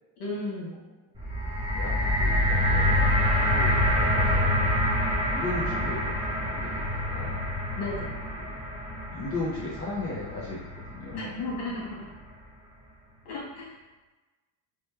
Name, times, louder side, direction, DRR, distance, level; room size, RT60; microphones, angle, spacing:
voice 1, 0.2-0.7 7.7-8.1 11.1-12.1 13.2-13.8, left 2 dB, 90° left, -5 dB, 1.3 m, -34 dB
sound 1, 1.2-11.4 12.1-12.2, left 1 dB, 15° right, 0.7 m, -26 dB
voice 2, 1.7-4.5 4.8-7.4 8.3-8.6 9.1-11.4, left 2 dB, 30° left, -6 dB, 0.5 m, -37 dB
3.0 x 2.1 x 3.2 m, 1.2 s
cardioid pair, 150°, 47 cm